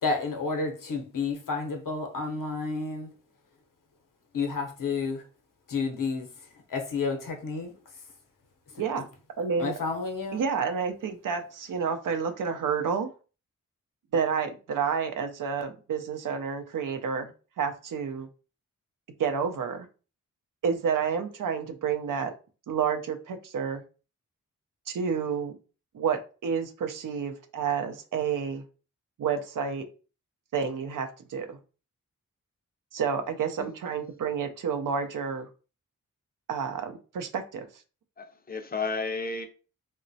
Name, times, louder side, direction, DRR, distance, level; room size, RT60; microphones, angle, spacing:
voice 1, 0.0-3.1 4.3-5.2 5.7-6.3 6.7-7.7 8.7-8.8 9.6-10.4, left 4 dB, 70° left, 0.7 m, -30 dB
voice 2, 9.4-9.7 10.3-13.1 14.1-17.3 17.6-18.3 19.2-19.9 20.6-22.3 22.7-23.8 24.9-25.6 25.9-28.6 29.2-29.8 30.5-31.6 32.9-35.5 36.5-37.7, right 6 dB, 70° right, 0.5 m, -29 dB
voice 3, 38.2-39.5, left 4 dB, 30° left, 0.5 m, -32 dB
2.9 x 2.1 x 2.6 m
cardioid pair, 50°, 33 cm